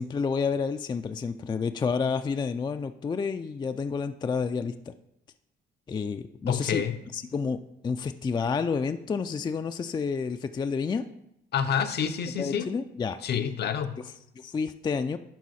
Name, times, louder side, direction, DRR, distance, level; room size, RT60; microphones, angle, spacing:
voice 1, 0.0-4.9 5.9-6.8 7.1-11.1 12.3-13.2 14.4-15.2, left 5 dB, 20° left, 9 dB, 0.3 m, -30 dB
voice 2, 6.5-7.0 11.5-12.7 13.2-13.9, left 7 dB, 55° left, 9 dB, 0.6 m, -28 dB
11.0 x 3.9 x 4.2 m, 0.80 s
cardioid pair, 90°, 20 cm